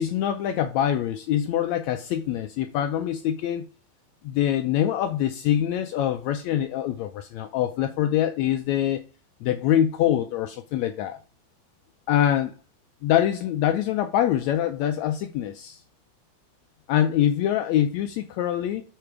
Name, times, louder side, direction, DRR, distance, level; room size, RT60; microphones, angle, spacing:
voice 1, 0.0-3.6 4.2-9.0 9.4-11.2 12.1-12.5 13.0-15.8 16.9-18.8, left 11 dB, 80° left, 1.7 m, -24 dB
10.0 x 3.9 x 4.7 m
omnidirectional pair, 3.6 m